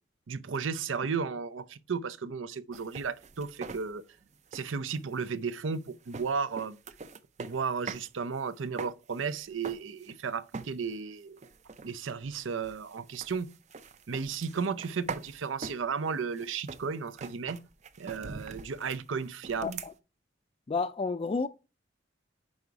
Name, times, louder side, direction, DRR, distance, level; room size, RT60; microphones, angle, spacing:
voice 1, 0.3-4.1 4.5-6.8 7.4-11.4 11.8-13.5 14.1-17.6 18.0-19.8, right 5 dB, 85° right, 0.6 m, -34 dB
sound 1, 2.7-8.1 8.4-10.3 10.5-11.0 11.4-19.9, right 4 dB, 35° right, 0.5 m, -44 dB
voice 2, 19.6-19.9 20.7-21.5, left 4 dB, 30° left, 0.3 m, -31 dB
5.4 x 4.8 x 4.6 m
head